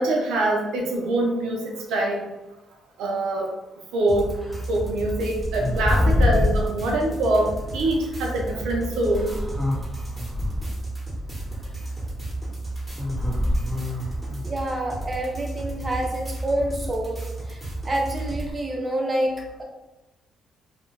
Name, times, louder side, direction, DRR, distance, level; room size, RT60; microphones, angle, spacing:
voice 1, 0.0-2.3 3.0-3.5 3.9-4.3 4.7-9.3, right 1 dB, 90° right, 0 dB, 0.5 m, -24 dB
sound 1, 4.1-18.5, right 2 dB, 10° right, 1.0 m, -33 dB
sound 2, 4.4-4.6 5.4-6.7 7.9-8.0 9.0-10.8 13.0-14.4, left 2 dB, 5° left, 0.7 m, -25 dB
voice 2, 14.4-17.6 17.8-19.6, right 1 dB, 30° right, 1 dB, 0.6 m, -28 dB
2.2 x 2.2 x 3.1 m, 0.99 s
cardioid pair, 90°, 0 cm